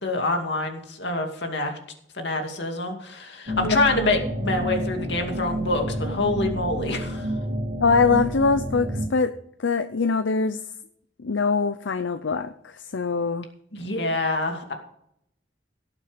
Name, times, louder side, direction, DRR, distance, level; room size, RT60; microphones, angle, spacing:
voice 1, 0.0-1.8 2.2-7.3 13.7-14.7, left 2 dB, 65° left, 4 dB, 2.4 m, -26 dB
sound 1, 3.5-9.1, equal, 50° right, 2.3 m, -29 dB
voice 2, 7.8-9.3 9.6-10.6 11.2-13.5, left 4 dB, 80° left, 10 dB, 0.6 m, -23 dB
18.0 x 7.3 x 5.1 m, 0.72 s
head